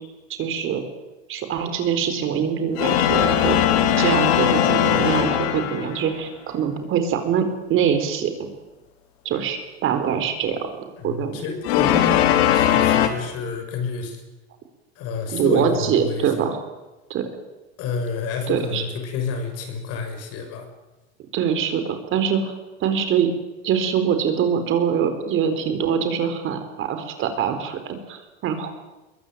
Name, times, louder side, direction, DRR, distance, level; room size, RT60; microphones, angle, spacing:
voice 1, 0.3-0.8 1.3-3.7 4.0-8.3 9.2-10.6 11.0-11.3 15.3-16.6 17.1-17.3 18.5-18.8 21.3-22.5 22.8-23.3 23.6-28.7, right 8 dB, 35° right, 8 dB, 4.1 m, -23 dB
sound 1, 2.7-6.1 11.6-13.1, left 10 dB, 65° left, 3.4 m, -19 dB
voice 2, 11.0-12.2 12.5-14.2 15.0-16.3 17.8-20.7, left 5 dB, 45° left, 6 dB, 6.4 m, -29 dB
23.0 x 22.5 x 9.2 m, 1.1 s
supercardioid pair, 145°, 34 cm